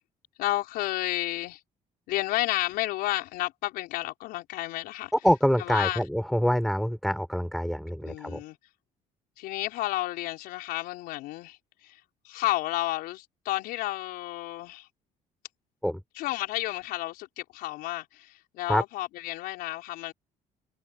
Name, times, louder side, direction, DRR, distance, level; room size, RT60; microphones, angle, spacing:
voice 1, 0.4-1.6 2.1-5.1 5.6-6.0 8.0-8.6 9.4-11.6 11.8-12.0 12.2-14.9 16.2-20.1, left 17 dB, 80° left, 5.1 m, -31 dB
voice 2, 5.1-8.4 15.8-16.0 18.7-18.8, equal, ahead, 6.1 m, -25 dB
supercardioid pair, 75°, 16 cm